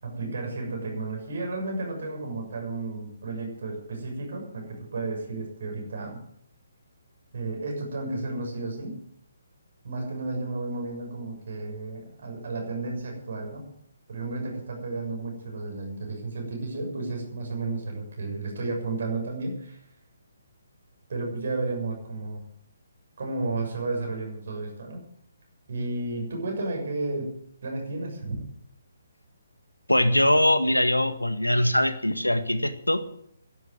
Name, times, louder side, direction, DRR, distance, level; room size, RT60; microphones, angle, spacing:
voice 1, 0.0-6.2 7.3-9.0 9.8-13.6 14.1-19.9 21.1-22.4 23.2-25.0 25.7-28.4, right 3 dB, 50° right, 1 dB, 6.8 m, -32 dB
voice 2, 29.9-33.2, left 1 dB, 85° left, 10 dB, 1.7 m, -22 dB
12.5 x 11.5 x 8.0 m, 0.69 s
figure-of-eight pair, 135°, 0 cm